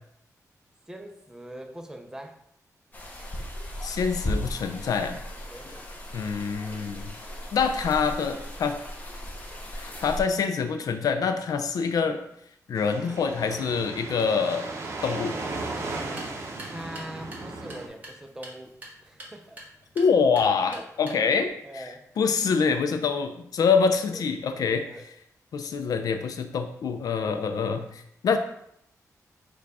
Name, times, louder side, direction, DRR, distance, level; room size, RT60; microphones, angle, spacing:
voice 1, 0.9-2.4 5.5-5.7 16.6-18.8 19.0-19.6 20.7-20.9 21.2-21.3 21.6-22.1 24.1-24.2 24.8-25.0, right 1 dB, 10° right, 4 dB, 0.5 m, -42 dB
sound 1, 2.9-10.2, equal, 25° left, 0.7 m, -36 dB
voice 2, 3.8-5.2 6.1-7.1 7.5-8.8 9.7-12.2 12.7-14.7 15.0-15.4 20.0-24.9 25.5-28.4, left 5 dB, 75° left, 8 dB, 0.4 m, -25 dB
sound 2, 12.8-17.9, right 3 dB, 45° right, 0.7 m, -36 dB
sound 3, 16.0-21.5, right 1 dB, 25° right, 1.2 m, -47 dB
4.6 x 2.3 x 4.7 m, 0.73 s
wide cardioid pair, 135°, 6 cm